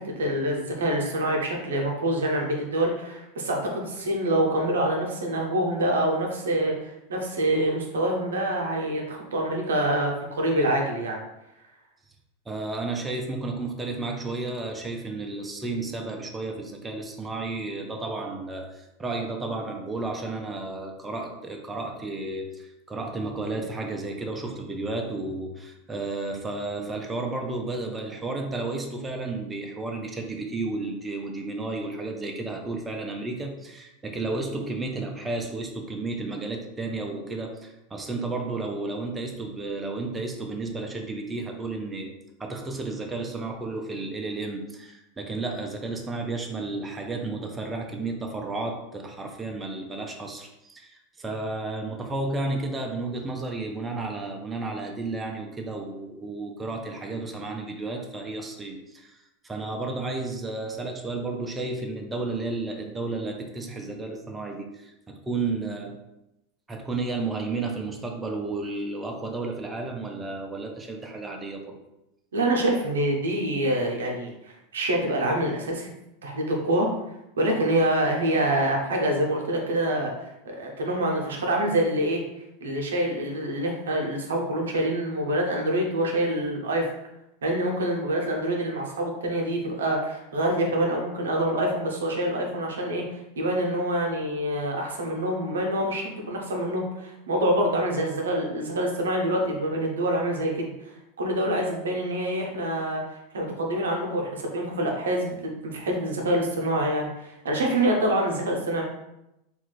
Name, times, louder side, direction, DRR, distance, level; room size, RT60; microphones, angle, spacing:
voice 1, 0.0-11.2 72.3-75.9 76.2-76.9 77.4-82.2 82.6-86.9 87.4-108.8, right 1 dB, 90° right, 1 dB, 0.7 m, -26 dB
voice 2, 12.5-42.1 42.4-66.0 66.7-71.8, right 3 dB, 15° right, 2 dB, 0.5 m, -32 dB
3.0 x 2.3 x 3.1 m, 0.89 s
hypercardioid pair, 105°, 0 cm